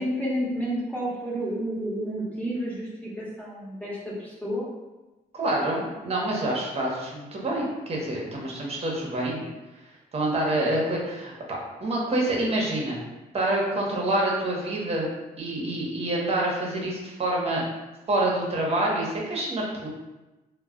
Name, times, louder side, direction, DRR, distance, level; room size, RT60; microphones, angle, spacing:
voice 1, 0.0-4.7, equal, 10° left, -7 dB, 1.1 m, -30 dB
voice 2, 5.3-9.4 10.1-13.0 13.3-15.1 15.4-17.6 18.1-19.9, right 1 dB, 40° right, -3 dB, 0.8 m, -27 dB
2.3 x 2.1 x 3.6 m, 1.1 s
cardioid pair, 85°, 16 cm